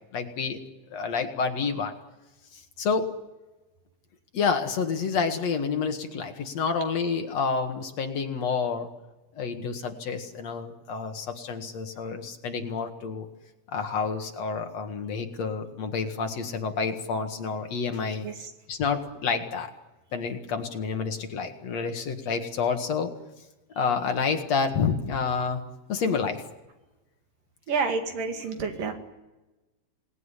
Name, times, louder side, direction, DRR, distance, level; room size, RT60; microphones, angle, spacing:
voice 1, 0.1-0.6 0.9-1.9 2.5-3.1 4.3-8.9 9.3-13.3 13.7-19.7 20.1-23.1 23.8-25.6 25.9-26.4, left 5 dB, 55° left, 5 dB, 2.7 m, -29 dB
voice 2, 27.7-28.9, right 4 dB, 80° right, 5 dB, 4.0 m, -28 dB
26.5 x 19.5 x 10.0 m, 1.1 s
omnidirectional pair, 3.9 m